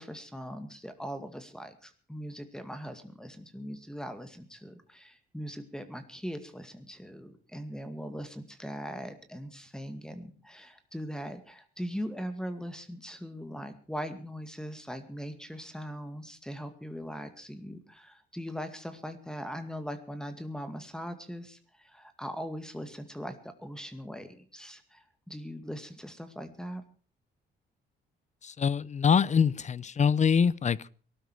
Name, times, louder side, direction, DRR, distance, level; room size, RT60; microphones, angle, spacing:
voice 1, 0.0-26.8, equal, 5° left, 9 dB, 2.2 m, -40 dB
voice 2, 28.4-30.9, left 6 dB, 35° left, 22 dB, 0.7 m, -24 dB
19.0 x 12.5 x 4.9 m, 0.40 s
cardioid pair, 90°, 20 cm